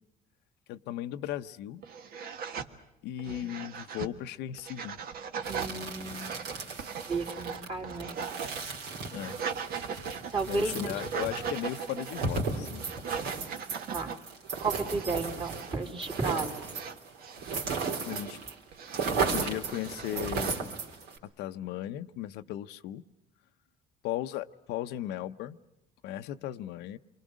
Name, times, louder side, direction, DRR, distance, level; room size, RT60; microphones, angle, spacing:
voice 1, 0.7-1.8 3.0-5.0 5.6-5.7 9.1-9.4 10.5-12.8 18.1-18.4 19.3-20.6 21.4-23.0 24.0-25.6 26.0-27.0, left 13 dB, 90° left, 9 dB, 0.8 m, -36 dB
sound 1, 1.3-1.4 1.8-2.7 3.2-4.1 4.6-5.7 6.1-8.6 9.0-10.5 10.9-12.3 12.8-14.2 14.6-15.1 15.4-15.7 16.0-16.4 16.7-18.3 18.7-20.6, right 6 dB, 60° right, 1.6 m, -39 dB
sound 2, 5.4-18.5 18.8-21.2, right 4 dB, 85° right, 3.7 m, -35 dB
voice 2, 5.5-6.2 7.1-8.1 10.3-10.9 11.4-11.5 13.9-14.2 14.6-16.7, right 3 dB, 30° right, 3 dB, 2.9 m, -33 dB
28.5 x 23.5 x 6.3 m, 0.89 s
cardioid pair, 110°, 17 cm